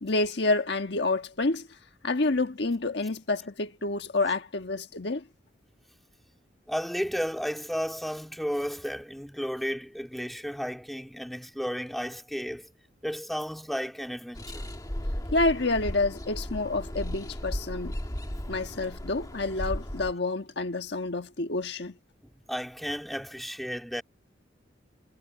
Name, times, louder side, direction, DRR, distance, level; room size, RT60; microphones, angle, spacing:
voice 1, 0.0-1.7 2.0-5.2 15.3-18.0 18.5-22.0, left 2 dB, 65° left, 1.4 m, -28 dB
voice 2, 6.7-12.7 13.0-14.7 22.2-24.0, equal, ahead, 2.7 m, -33 dB
sound 1, 14.3-20.1, equal, 20° left, 1.5 m, -35 dB
head